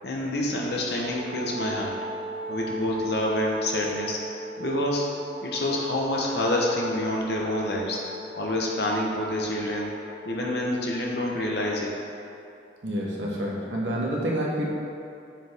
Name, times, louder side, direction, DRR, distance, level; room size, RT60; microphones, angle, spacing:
voice 1, 0.0-1.9 2.5-4.2 4.6-5.1 5.4-8.0 8.4-9.9 10.2-11.9, left 1 dB, 60° left, -2 dB, 1.0 m, -27 dB
Wind instrument woodwind instrument, 1.1-11.1, equal, 30° right, 0.4 m, -38 dB
voice 2, 12.8-14.6, equal, 80° right, -4 dB, 1.2 m, -28 dB
7.1 x 4.7 x 3.6 m, 2.6 s
head